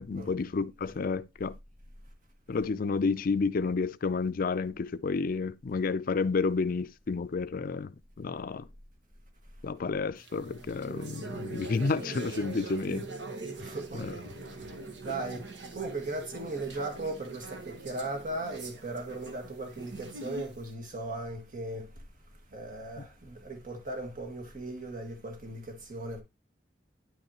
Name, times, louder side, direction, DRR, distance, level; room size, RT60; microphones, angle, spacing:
voice 1, 0.0-1.5 2.5-7.9 8.2-8.6 9.6-13.1 13.9-14.1 23.0-23.1, left 4 dB, 50° left, 0.4 m, -30 dB
sound 1, 10.2-20.7, right 3 dB, 90° right, 1.3 m, -43 dB
voice 2, 13.6-14.8 15.0-15.5 15.7-21.9 22.5-26.2, right 2 dB, 50° right, 1.8 m, -37 dB
9.6 x 5.6 x 2.9 m
head